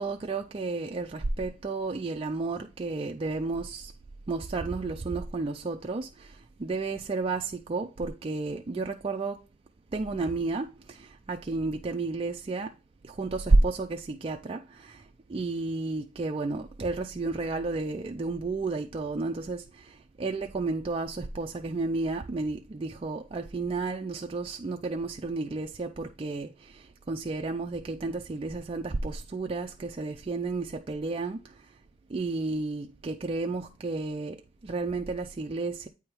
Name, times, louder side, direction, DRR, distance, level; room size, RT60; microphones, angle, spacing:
voice 1, 0.0-3.9 4.3-9.4 9.9-12.7 13.0-15.0 15.3-31.5 32.1-35.9, right 3 dB, 30° right, 0.4 m, -31 dB
8.7 x 3.5 x 4.5 m
head